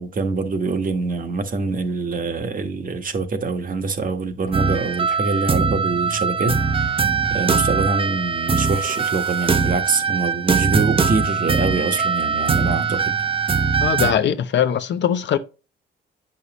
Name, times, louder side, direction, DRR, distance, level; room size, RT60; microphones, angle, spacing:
voice 1, 0.0-7.0 7.3-13.1, right 3 dB, 45° right, 1.4 m, -25 dB
sound 1, 4.5-14.1, right 5 dB, 25° right, 0.8 m, -21 dB
voice 2, 13.8-15.4, left 9 dB, 65° left, 0.8 m, -21 dB
8.2 x 5.6 x 3.0 m
cardioid pair, 90°, 20 cm